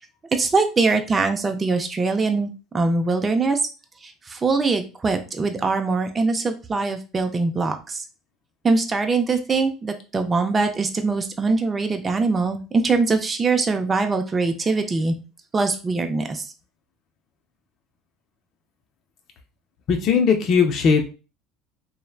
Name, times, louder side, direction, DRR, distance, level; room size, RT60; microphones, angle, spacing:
voice 1, 0.3-3.6 4.0-8.0 8.6-15.2 15.5-16.4, right 3 dB, 25° right, 6 dB, 0.5 m, -22 dB
voice 2, 19.9-21.1, left 6 dB, 50° left, 4 dB, 0.5 m, -18 dB
3.1 x 2.0 x 2.3 m, 0.33 s
supercardioid pair, 90°, 0 cm